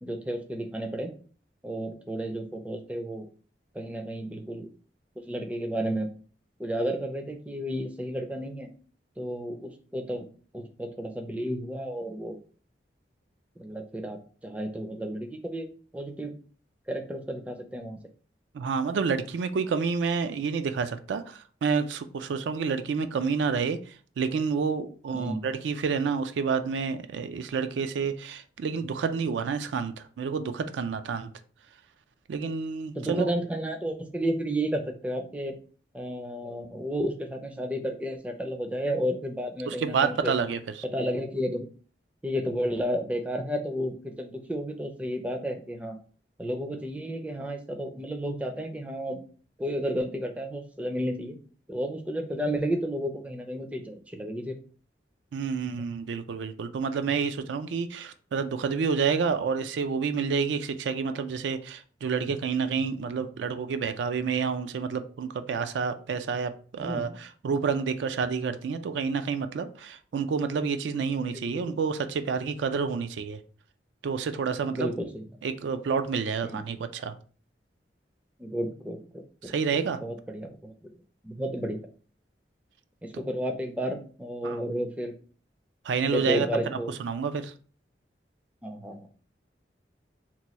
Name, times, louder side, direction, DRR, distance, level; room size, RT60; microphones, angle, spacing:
voice 1, 0.0-1.1 1.6-3.3 3.7-4.7 5.3-6.1 6.6-8.7 9.2-10.3 10.5-12.4 13.6-15.7 15.9-16.3 16.9-18.0 25.1-25.4 33.0-35.6 35.9-40.3 40.9-41.7 42.2-46.0 46.4-49.2 49.6-51.4 51.7-54.5 66.8-67.2 71.2-71.7 74.7-75.2 76.4-76.6 78.4-79.5 80.0-80.9 81.2-81.8 83.0-85.1 86.0-86.9 88.6-89.1, equal, 10° right, 0.4 m, -32 dB
voice 2, 18.5-31.3 32.3-33.3 39.7-40.6 55.3-73.4 74.0-74.9 75.4-77.2 79.4-80.0 84.4-84.6 85.8-87.5, right 5 dB, 80° right, 0.3 m, -29 dB
2.9 x 2.2 x 4.1 m
head